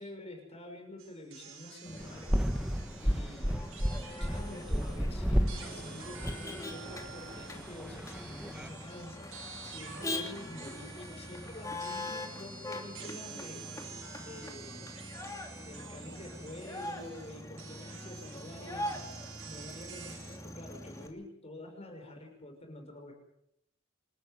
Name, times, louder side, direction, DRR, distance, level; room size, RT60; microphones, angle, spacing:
voice 1, 0.0-2.5 3.0-3.6 4.2-13.9 14.2-14.9 15.6-19.1 19.4-23.1, left 1 dB, 30° left, 3 dB, 6.1 m, -47 dB
sound 1, 1.0-5.1 5.5-20.4, right 5 dB, 85° right, 6.7 m, -49 dB
Motor vehicle (road), 1.9-21.1, left 1 dB, 15° left, 2.9 m, -43 dB
sound 2, 2.0-8.7, equal, 5° right, 1.3 m, -33 dB
27.5 x 13.5 x 9.3 m, 0.76 s
head